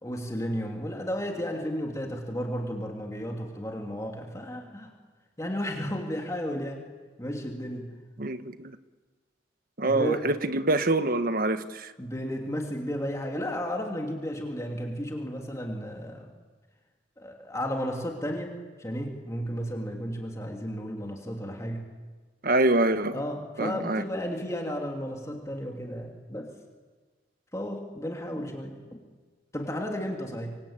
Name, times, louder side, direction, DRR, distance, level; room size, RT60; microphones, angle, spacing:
voice 1, 0.0-4.9 5.4-6.9 7.2-7.9 9.8-10.2 12.0-16.3 17.2-21.8 23.1-26.5 27.5-29.0 29.5-30.6, equal, 15° left, 3.0 m, -33 dB
voice 2, 8.2-8.8 9.8-11.9 22.4-23.2 23.6-24.0, right 2 dB, 50° right, 1.3 m, -25 dB
26.5 x 24.5 x 8.9 m
head